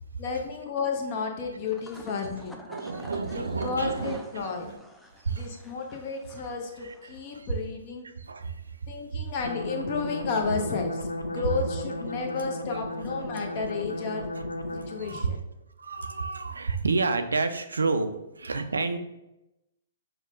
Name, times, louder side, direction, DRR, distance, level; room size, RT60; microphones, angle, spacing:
voice 1, 0.2-2.6 3.4-4.7 5.3-8.1 8.9-14.3 14.7-15.4, left 5 dB, 40° left, 3 dB, 0.6 m, -32 dB
sound 1, 1.6-7.4, equal, 5° left, 0.3 m, -49 dB
voice 2, 2.7-4.8 5.2-5.6 6.8-7.5 8.0-9.3 12.4-12.8 13.4-13.5 14.9-15.4 15.8-19.0, right 4 dB, 75° right, 9 dB, 0.3 m, -31 dB
sound 2, 9.4-15.1, left 1 dB, 85° left, 0.3 m, -34 dB
5.7 x 2.1 x 2.4 m, 0.91 s
figure-of-eight pair, 120°, 0 cm